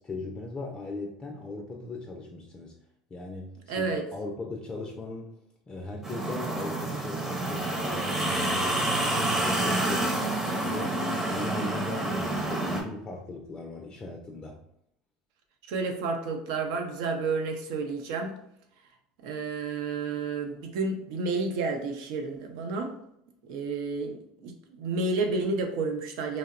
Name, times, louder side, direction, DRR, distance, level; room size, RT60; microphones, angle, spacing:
voice 1, 0.0-2.7 3.1-5.3 5.7-11.0 11.2-14.6, left 2 dB, 30° left, 0 dB, 0.4 m, -38 dB
voice 2, 3.7-4.0 15.7-18.4 19.2-22.9 23.5-26.4, right 3 dB, 75° right, 4 dB, 0.5 m, -30 dB
sound 1, 6.0-12.8, right 2 dB, 15° right, 0.6 m, -28 dB
2.7 x 2.0 x 2.4 m, 0.76 s
hypercardioid pair, 90°, 3 cm